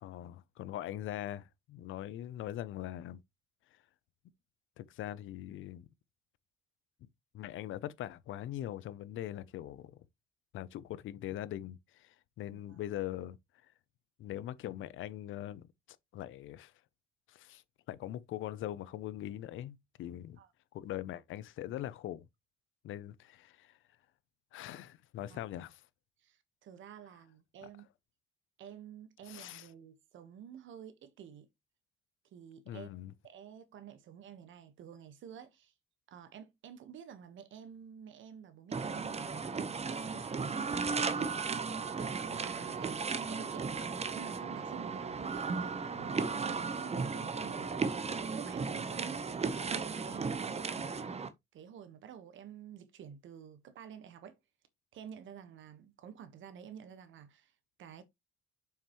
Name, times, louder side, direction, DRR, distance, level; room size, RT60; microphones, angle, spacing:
voice 1, 0.0-3.2 4.8-5.9 7.0-7.1 7.3-10.0 10.5-13.4 14.2-15.7 16.1-16.7 17.3-20.4 20.7-22.3 22.8-23.8 24.5-25.8 29.3-29.7 32.7-33.1, left 13 dB, 80° left, 0.7 m, -42 dB
voice 2, 26.2-27.8 28.6-31.5 32.3-35.7 36.1-39.3 39.8-41.2 42.0-43.7 44.1-47.7 48.3-51.1 51.5-54.4 54.9-57.5 57.8-58.0, right 8 dB, 75° right, 1.4 m, -50 dB
sound 1, 38.7-51.3, right 5 dB, 30° right, 1.0 m, -35 dB
7.2 x 5.8 x 3.1 m
cardioid pair, 90°, 20 cm